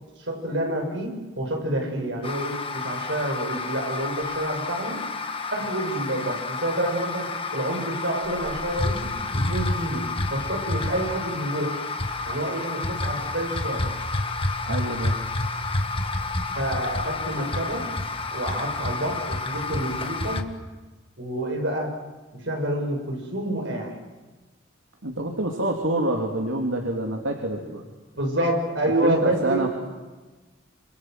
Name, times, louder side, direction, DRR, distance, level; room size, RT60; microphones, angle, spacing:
voice 1, 0.2-5.1 5.5-11.8 12.2-13.9 16.5-17.9 18.3-20.5 21.2-22.0 22.3-24.0 28.1-29.7, right 1 dB, 65° right, 2 dB, 6.6 m, -28 dB
sound 1, 2.2-20.4, left 2 dB, 25° left, 1.7 m, -29 dB
voice 2, 14.6-15.2 25.0-27.8 29.0-29.7, right 1 dB, 80° right, 1 dB, 3.1 m, -27 dB
27.5 x 27.0 x 7.7 m, 1.2 s
head